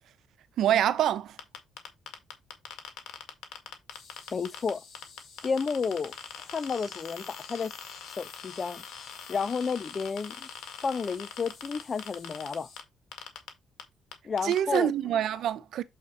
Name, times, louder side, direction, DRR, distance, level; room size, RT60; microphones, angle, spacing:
voice 1, 0.6-1.4 14.4-15.8, right 10 dB, 75° right, 0.8 m, -26 dB
sound 1, 1.4-4.7 5.0-12.8 13.1-13.5 13.8-13.9 14.1-14.8, left 8 dB, 80° left, 1.8 m, -42 dB
sound 2, 3.9-12.8, left 5 dB, 65° left, 3.9 m, -52 dB
voice 2, 4.3-4.8 5.4-6.1 6.4-7.8 8.1-8.8 9.3-10.5 10.8-12.7 14.2-14.9, left 5 dB, 40° left, 0.5 m, -31 dB
7.5 x 4.1 x 4.2 m
cardioid pair, 90°, 0 cm